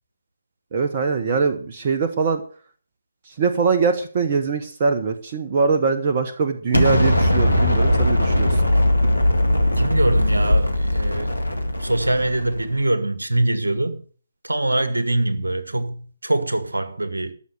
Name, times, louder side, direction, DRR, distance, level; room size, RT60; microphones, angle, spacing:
voice 1, 0.7-2.4 3.3-8.5, right 5 dB, 35° right, 1.2 m, -22 dB
Explosion, 6.7-12.7, left 1 dB, 80° left, 2.2 m, -19 dB
voice 2, 9.8-11.4 11.8-14.0 14.4-17.3, right 2 dB, 70° right, 1.8 m, -23 dB
13.5 x 6.6 x 7.9 m
figure-of-eight pair, 140°, 0 cm